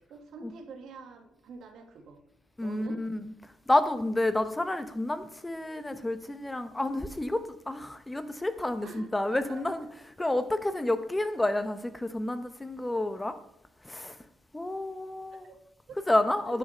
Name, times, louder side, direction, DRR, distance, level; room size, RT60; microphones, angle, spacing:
voice 1, 0.1-2.2 2.6-3.0 8.8-9.6 10.2-10.3 15.4-16.0 16.5-16.6, right 4 dB, 70° right, 1.9 m, -46 dB
voice 2, 2.6-9.9 10.2-13.4 13.8-14.2 14.5-15.5 16.1-16.6, left 1 dB, 15° left, 0.9 m, -30 dB
10.5 x 5.7 x 5.7 m
cardioid pair, 90°, 0 cm